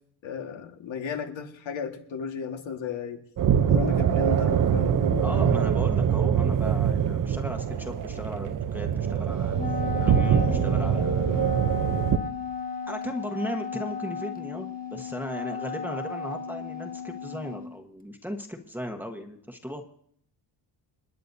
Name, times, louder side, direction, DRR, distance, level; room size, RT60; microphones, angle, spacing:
voice 1, 0.2-3.2 3.6-5.9 10.3-10.7, left 7 dB, 80° left, 4 dB, 1.8 m, -35 dB
sound 1, 3.4-12.2, right 8 dB, 45° right, 0.8 m, -24 dB
voice 2, 5.2-9.6 10.0-11.8 12.9-19.8, equal, 5° right, 2 dB, 1.3 m, -37 dB
Wind instrument woodwind instrument, 9.5-17.7, left 5 dB, 20° left, 0.7 m, -35 dB
29.0 x 10.0 x 2.7 m, 0.67 s
cardioid pair, 115°, 46 cm